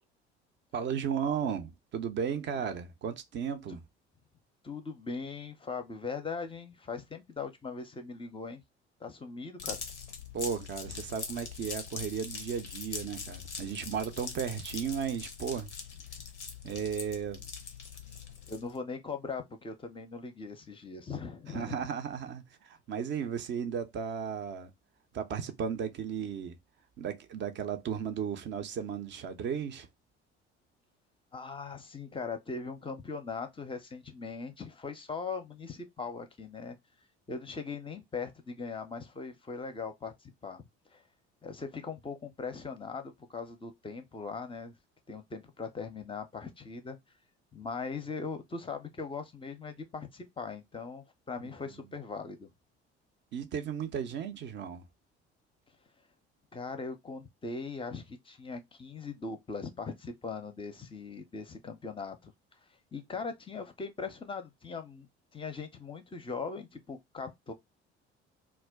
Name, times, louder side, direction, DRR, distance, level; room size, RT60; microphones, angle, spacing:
voice 1, 0.7-3.8 10.3-15.7 16.6-17.4 21.5-24.7 25.1-26.6 27.0-29.9 53.3-54.8, right 7 dB, 35° right, 0.5 m, -35 dB
voice 2, 4.6-8.6 9.0-9.8 18.5-21.9 31.3-36.8 37.3-40.6 40.9-41.0 41.4-44.7 45.1-47.0 47.5-52.5 56.5-62.3 62.9-67.5, left 4 dB, 15° left, 0.5 m, -40 dB
sound 1, 9.6-18.8, left 5 dB, 90° left, 0.5 m, -42 dB
2.3 x 2.1 x 3.4 m
figure-of-eight pair, 55°, 33 cm